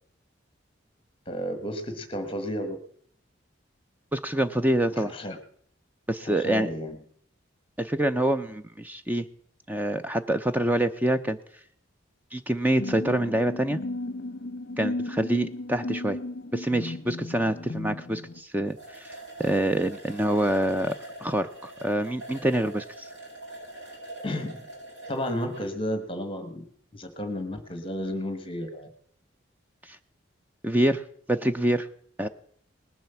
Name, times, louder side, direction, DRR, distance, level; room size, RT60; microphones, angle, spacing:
voice 1, 1.3-2.8 5.0-5.4 6.2-7.0 24.2-24.6 25.1-26.6 26.9-28.9, equal, 25° left, 8 dB, 1.3 m, -32 dB
voice 2, 4.1-5.1 6.1-6.7 7.8-9.3 9.7-11.4 12.3-13.8 14.8-16.2 16.5-23.1 29.9-30.0 30.6-31.0 31.3-31.9 32.2-32.3, right 1 dB, 10° right, 9 dB, 0.5 m, -26 dB
sound 1, 12.8-18.4, left 2 dB, 50° left, 0.8 m, -35 dB
sound 2, 18.3-18.4 18.7-25.7, right 1 dB, 80° right, 7.3 m, -43 dB
19.5 x 7.5 x 6.9 m, 0.63 s
head